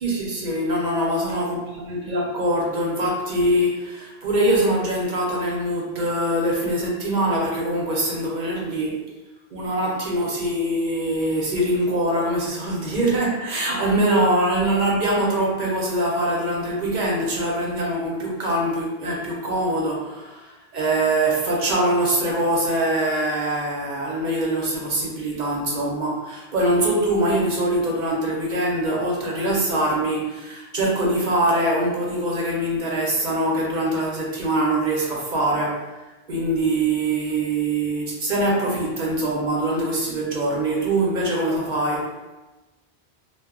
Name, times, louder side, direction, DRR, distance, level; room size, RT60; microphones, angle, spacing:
voice 1, 0.0-9.1 9.5-35.8 36.3-42.1, right 1 dB, 55° right, -3 dB, 0.6 m, -23 dB
2.1 x 2.0 x 3.6 m, 1.1 s
omnidirectional pair, 1.1 m